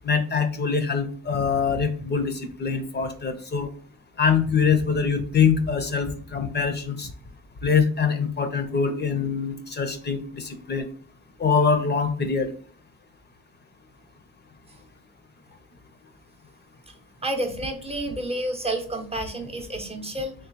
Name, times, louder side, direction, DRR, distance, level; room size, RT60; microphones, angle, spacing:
voice 1, 0.0-3.7 4.2-7.1 7.6-10.9 11.4-12.5, left 5 dB, 35° left, 8 dB, 0.7 m, -24 dB
voice 2, 16.9-20.3, right 1 dB, 20° right, 4 dB, 0.7 m, -30 dB
3.6 x 3.2 x 3.0 m, 0.43 s
cardioid pair, 90°, 30 cm